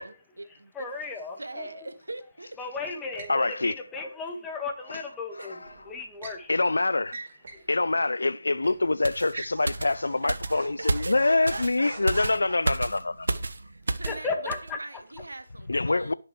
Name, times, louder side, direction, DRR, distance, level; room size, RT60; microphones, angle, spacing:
voice 1, 0.0-0.7 1.4-2.6 5.4-5.5 7.6-7.7 10.2-10.4 10.8-12.4 13.5-16.1, right 2 dB, 85° right, 1.6 m, -41 dB
voice 2, 0.7-1.9 2.6-5.6 5.9-6.6 7.5-7.6 13.9-14.8, left 4 dB, 10° left, 1.6 m, -35 dB
sound 1, 3.2-3.4 5.6-6.4 7.0-7.7 8.0-8.2 8.6-8.8 9.3-12.5, right 3 dB, 50° right, 3.4 m, -43 dB
voice 3, 3.3-3.8 4.9-5.0 5.4-5.7 6.5-7.2 7.7-13.3 15.7-16.1, left 2 dB, 80° left, 0.5 m, -25 dB
sound 2, 9.0-14.2 14.5-14.7, right 3 dB, 70° right, 1.0 m, -32 dB
18.5 x 6.6 x 3.2 m
figure-of-eight pair, 155°, 0 cm